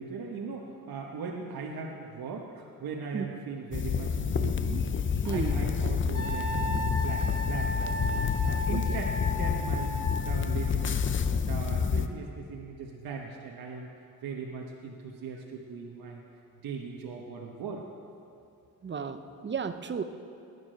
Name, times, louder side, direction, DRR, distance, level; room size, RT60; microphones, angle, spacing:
voice 1, 0.0-4.9 5.2-8.1 8.4-11.0 11.3-13.9 14.2-16.2 16.6-17.9, right 5 dB, 80° right, -1 dB, 1.3 m, -39 dB
sound 1, 3.7-12.1, left 6 dB, 35° left, 0.6 m, -28 dB
voice 2, 5.3-5.6 8.7-8.8 18.8-20.0, right 6 dB, 30° right, 9 dB, 0.7 m, -33 dB
Wind instrument woodwind instrument, 6.1-10.4, left 1 dB, 55° left, 2.8 m, -35 dB
19.0 x 9.8 x 6.5 m, 2.6 s
wide cardioid pair, 145°, 35 cm